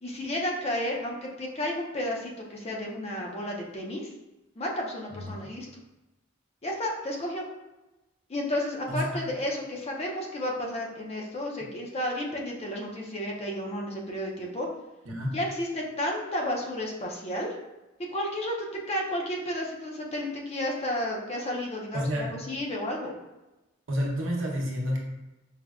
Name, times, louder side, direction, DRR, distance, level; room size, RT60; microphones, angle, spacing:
voice 1, 0.0-4.1 4.6-5.7 6.6-7.5 8.3-14.7 15.3-17.5 18.1-23.1, left 1 dB, 30° left, -1 dB, 0.5 m, -32 dB
voice 2, 8.9-9.2 15.0-15.3 21.9-22.3 23.9-25.0, equal, 70° right, -1 dB, 0.8 m, -29 dB
4.8 x 2.1 x 2.3 m, 1.0 s
head